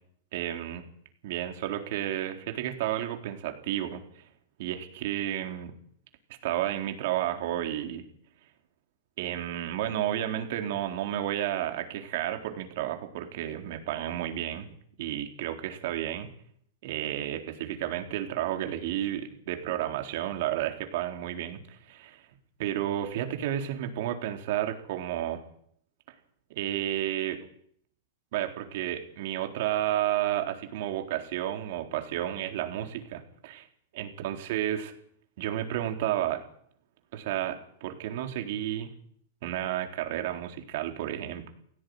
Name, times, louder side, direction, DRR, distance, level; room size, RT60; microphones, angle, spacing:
voice 1, 0.3-0.8 1.2-4.2 4.6-5.7 6.4-8.0 9.2-14.7 15.0-16.3 16.8-22.2 22.6-25.4 26.6-27.4 28.3-33.7 33.9-34.9 35.4-36.4 37.1-38.9 39.4-41.5, right 12 dB, 55° right, 5 dB, 4.0 m, -31 dB
17.5 x 16.5 x 9.7 m, 0.65 s
supercardioid pair, 145°, 0 cm